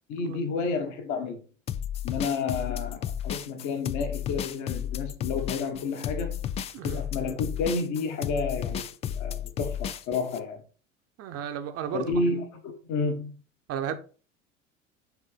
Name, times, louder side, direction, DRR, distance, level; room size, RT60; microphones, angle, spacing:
voice 1, 0.1-1.4 2.0-6.4 6.8-10.6 11.9-13.4, left 4 dB, 45° left, 1.6 m, -31 dB
sound 1, 1.7-10.4, left 9 dB, 20° left, 0.3 m, -33 dB
voice 2, 11.2-12.2 13.7-14.0, right 9 dB, 35° right, 1.1 m, -33 dB
8.5 x 3.8 x 5.1 m
figure-of-eight pair, 75°, 39 cm